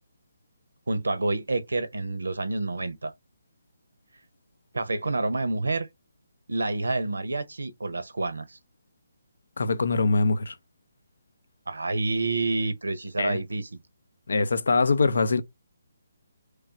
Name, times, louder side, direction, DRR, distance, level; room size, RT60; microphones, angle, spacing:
voice 1, 0.9-3.1 4.7-5.9 6.5-8.6 11.7-13.8, right 2 dB, 85° right, 0.6 m, -28 dB
voice 2, 9.6-10.5 13.2-13.4 14.3-15.4, left 3 dB, 70° left, 0.6 m, -23 dB
3.2 x 2.4 x 4.1 m
hypercardioid pair, 155°, 0 cm